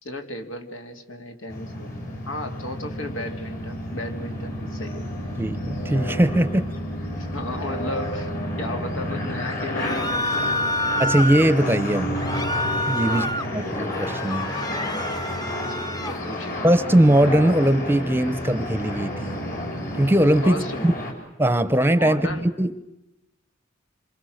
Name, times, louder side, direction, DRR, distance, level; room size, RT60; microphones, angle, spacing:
voice 1, 0.0-5.1 7.2-8.3 8.6-10.7 13.0-13.3 15.7-16.6 20.4-20.9 22.0-22.5, left 1 dB, 80° left, 5 dB, 2.9 m, -35 dB
sound 1, 1.5-21.1, left 1 dB, 45° left, 5.1 m, -31 dB
voice 2, 5.4-6.7 11.0-12.2 12.9-13.3 13.5-14.5 16.6-19.3 19.9-20.9 21.4-22.8, right 1 dB, 10° right, 13 dB, 0.8 m, -20 dB
sound 2, 9.8-11.5 12.2-13.5 13.9-16.2, left 1 dB, 20° left, 1.0 m, -27 dB
26.5 x 26.5 x 6.5 m, 0.90 s
head